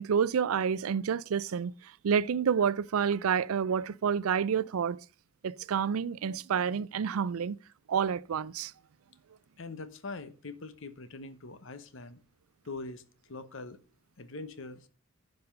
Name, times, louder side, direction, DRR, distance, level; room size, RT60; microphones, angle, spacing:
voice 1, 0.0-1.7 2.0-5.0 5.4-7.6 7.9-8.7, right 7 dB, 85° right, 0.4 m, -29 dB
voice 2, 9.6-12.2 12.6-13.8 14.2-14.9, left 3 dB, 65° left, 1.0 m, -43 dB
10.0 x 5.4 x 5.2 m
head